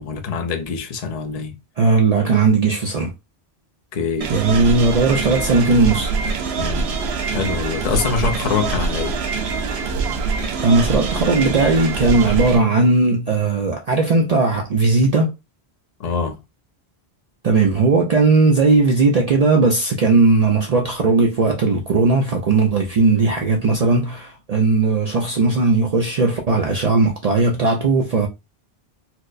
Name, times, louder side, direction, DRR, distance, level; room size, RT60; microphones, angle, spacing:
voice 1, 0.0-1.5 3.9-4.3 6.6-6.9 7.3-9.2 16.0-16.4, left 5 dB, 45° left, 0.6 m, -24 dB
voice 2, 1.8-3.1 4.3-6.1 10.6-15.3 17.4-28.3, right 3 dB, 50° right, 0.5 m, -17 dB
sound 1, 4.2-12.6, right 4 dB, 80° right, 0.9 m, -24 dB
4.4 x 2.0 x 2.5 m
omnidirectional pair, 1.0 m